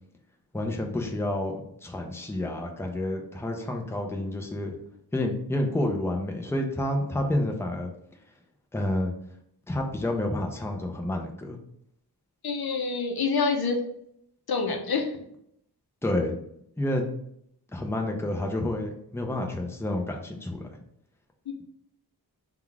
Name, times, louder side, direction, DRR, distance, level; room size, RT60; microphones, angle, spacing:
voice 1, 0.5-4.7 5.1-7.9 8.7-9.1 9.7-11.6 16.0-16.3 16.8-17.1 17.7-20.7, left 1 dB, 5° left, 2 dB, 0.6 m, -29 dB
voice 2, 12.4-13.8 14.5-15.1, left 4 dB, 65° left, 3 dB, 0.7 m, -26 dB
3.7 x 2.4 x 4.5 m, 0.72 s
wide cardioid pair, 90°, 40 cm